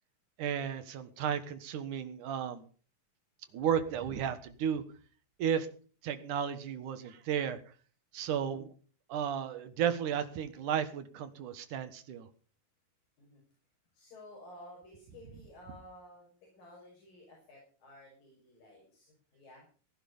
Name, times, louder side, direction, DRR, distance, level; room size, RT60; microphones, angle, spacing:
voice 1, 0.4-2.6 3.5-4.8 5.4-5.7 6.0-7.6 8.1-8.7 9.1-12.3, right 8 dB, 70° right, 10 dB, 2.9 m, -33 dB
voice 2, 8.3-8.6 13.2-13.4 13.9-19.7, left 1 dB, 85° left, -2 dB, 7.5 m, -54 dB
18.0 x 11.0 x 5.4 m, 0.41 s
omnidirectional pair, 3.9 m